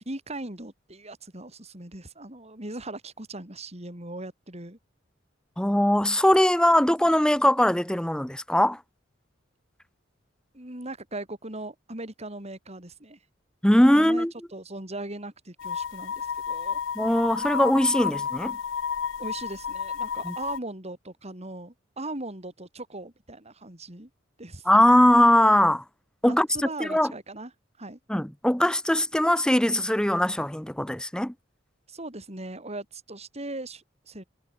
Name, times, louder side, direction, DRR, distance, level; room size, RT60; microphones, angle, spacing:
voice 1, 0.1-4.8 7.0-7.5 10.5-13.2 13.9-14.3 14.5-16.8 19.2-24.1 24.4-24.7 26.2-27.5 27.8-28.0 31.9-34.2, right 2 dB, 35° right, 5.3 m, -39 dB
voice 2, 5.6-8.8 13.6-14.3 17.0-18.6 20.2-20.3 24.7-25.8 26.2-26.5 26.8-27.1 28.1-31.3, left 1 dB, 5° left, 0.8 m, -21 dB
sound 1, 15.6-20.6, left 7 dB, 80° left, 0.5 m, -31 dB
head